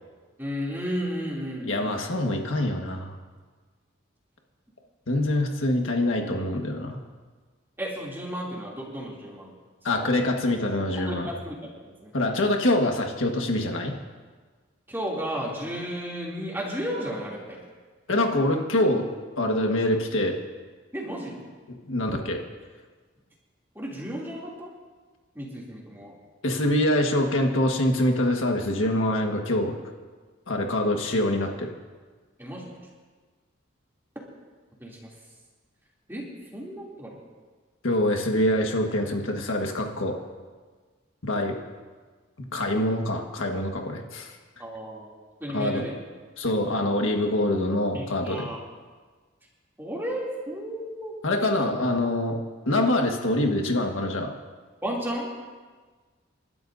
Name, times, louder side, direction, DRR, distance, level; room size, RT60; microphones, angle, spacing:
voice 1, 0.4-2.1 7.8-9.5 9.9-10.1 11.0-11.6 11.9-12.4 14.9-17.6 20.9-21.4 23.7-24.7 25.3-26.1 32.4-32.7 34.8-35.1 36.1-36.2 36.5-37.2 44.6-45.1 45.4-45.9 46.7-46.9 47.9-48.6 49.8-51.1 51.4-51.7 54.8-55.3, equal, 10° right, -4 dB, 2.8 m, -33 dB
voice 2, 1.6-3.2 5.1-7.0 9.8-11.3 12.1-13.9 18.1-19.1 19.4-20.3 21.7-22.4 26.4-29.8 30.5-31.7 37.8-40.2 41.2-41.6 42.5-44.4 45.5-45.8 46.4-48.5 51.2-52.4 52.7-54.3, left 1 dB, 85° left, 2 dB, 1.6 m, -25 dB
29.0 x 12.5 x 2.7 m, 1.4 s
head